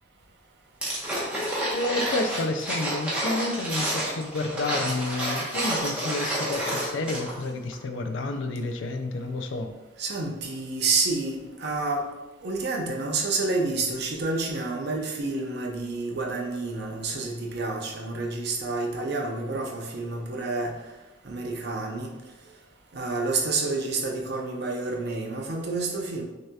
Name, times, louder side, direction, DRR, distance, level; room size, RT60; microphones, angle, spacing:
sound 1, 0.8-7.4 7.7-7.8, right 1 dB, 5° right, 1.0 m, -29 dB
voice 1, 1.7-9.7 19.0-19.1, left 2 dB, 70° left, 7 dB, 0.4 m, -30 dB
voice 2, 10.0-12.0 12.4-20.7 21.2-22.1 22.9-26.2, right 3 dB, 55° right, 0 dB, 0.7 m, -29 dB
6.3 x 2.8 x 2.3 m, 1.1 s
head